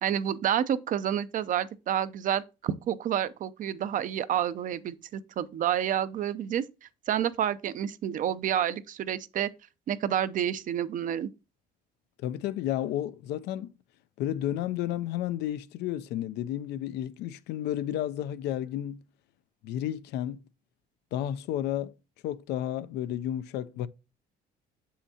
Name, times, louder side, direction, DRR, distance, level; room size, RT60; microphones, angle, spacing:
voice 1, 0.0-9.5 9.9-11.3, right 10 dB, 50° right, 0.5 m, -29 dB
voice 2, 12.2-13.7 14.2-19.0 19.6-20.4 21.1-21.9 22.2-23.9, left 12 dB, 80° left, 0.4 m, -32 dB
7.1 x 5.6 x 2.8 m
cardioid pair, 110°, 17 cm